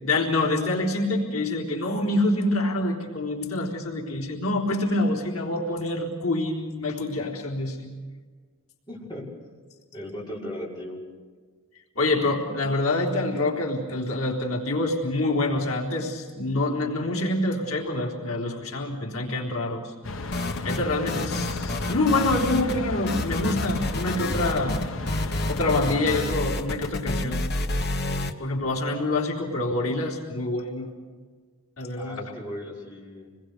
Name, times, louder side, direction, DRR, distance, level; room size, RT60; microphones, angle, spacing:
voice 1, 0.0-7.9 12.0-19.9 20.6-24.8 25.5-27.4 28.4-30.9 31.8-32.2, left 2 dB, 90° left, -1 dB, 3.8 m, -26 dB
voice 2, 8.9-9.2 9.9-11.0 32.0-33.3, left 1 dB, 20° left, -6 dB, 6.2 m, -37 dB
sound 1, 20.0-26.2, left 3 dB, 70° left, 1.0 m, -34 dB
sound 2, 20.3-20.8 21.1-22.8 23.1-28.3, left 2 dB, 50° left, 1.2 m, -29 dB
28.0 x 21.0 x 6.8 m, 1.5 s
head